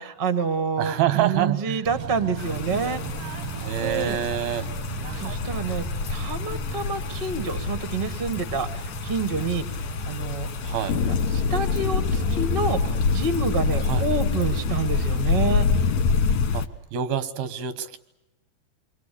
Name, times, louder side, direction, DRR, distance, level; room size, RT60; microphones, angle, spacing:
voice 1, 0.0-3.0 3.8-4.2 5.1-9.7 10.1-10.5 10.9-11.0 11.3-12.8 13.1-15.7, right 4 dB, 45° right, 10 dB, 0.6 m, -28 dB
voice 2, 0.8-1.9 3.6-4.7 10.6-11.0 13.8-14.1 16.5-18.0, right 10 dB, 90° right, 12 dB, 3.2 m, -27 dB
Bird / Train, 1.9-15.2, right 8 dB, 65° right, 1.5 m, -38 dB
sound 1, 2.4-16.7, left 5 dB, 60° left, 2.3 m, -26 dB
28.5 x 23.0 x 8.5 m, 0.95 s
omnidirectional pair, 4.2 m